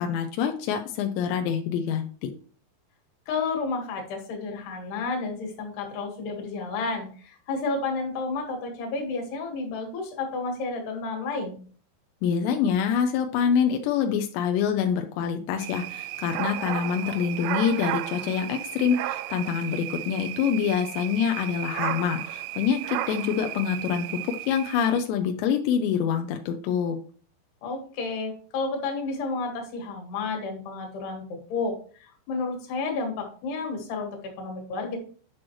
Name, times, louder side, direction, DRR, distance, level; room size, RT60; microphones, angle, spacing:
voice 1, 0.0-2.3 12.2-27.0, left 7 dB, 90° left, 5 dB, 3.0 m, -26 dB
voice 2, 3.3-11.6 27.6-35.0, left 3 dB, 70° left, 2 dB, 3.8 m, -31 dB
sound 1, 15.6-25.0, right 15 dB, 85° right, 2.6 m, -34 dB
10.0 x 6.1 x 3.1 m, 0.43 s
omnidirectional pair, 5.0 m